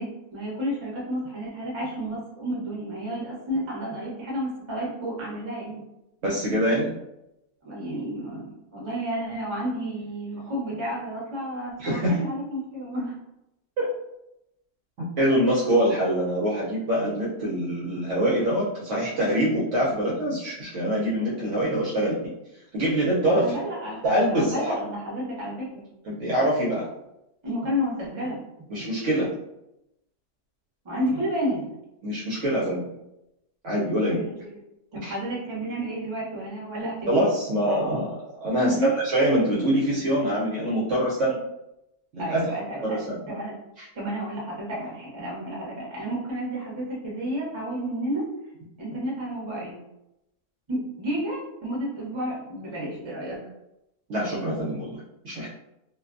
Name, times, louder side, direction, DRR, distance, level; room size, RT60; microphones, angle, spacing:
voice 1, 0.0-5.8 7.6-13.2 23.3-25.7 27.4-28.7 30.8-31.6 34.1-34.6 34.9-37.1 38.6-38.9 42.2-43.0 43.3-43.5 43.9-48.2 48.8-49.8 50.7-53.4, equal, 25° right, -5 dB, 0.6 m, -31 dB
voice 2, 6.2-6.9 11.8-12.2 13.8-13.9 15.0-22.2 22.7-23.5 24.0-24.8 26.1-26.9 28.7-29.3 32.0-32.8 33.6-34.2 35.0-35.1 37.1-38.1 38.4-41.4 42.1-42.4 42.8-43.2 43.8-43.9 54.1-54.9 55.2-55.5, right 1 dB, 65° right, -6 dB, 0.8 m, -24 dB
2.5 x 2.1 x 2.4 m, 0.87 s
omnidirectional pair, 1.6 m